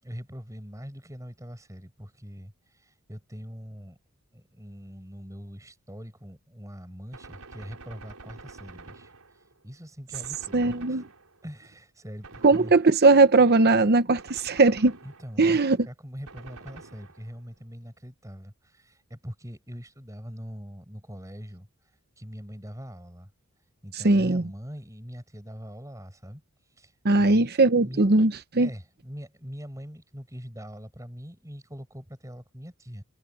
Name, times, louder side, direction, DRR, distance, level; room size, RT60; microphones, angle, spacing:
voice 1, 0.0-4.0 4.3-9.1 9.6-11.0 11.4-12.7 15.0-21.7 22.2-23.3 23.8-26.4 26.8-27.5 27.8-28.0 28.6-33.0, equal, 15° right, 7.4 m, -42 dB
Gunshot gunfire, 7.1-9.6 10.1-11.5 12.2-13.3 14.2-15.6 16.3-17.5, right 3 dB, 85° right, 4.0 m, -48 dB
voice 2, 10.5-11.0 12.4-15.0 15.4-15.8 24.0-24.4 27.0-28.7, right 3 dB, 45° right, 0.9 m, -19 dB
head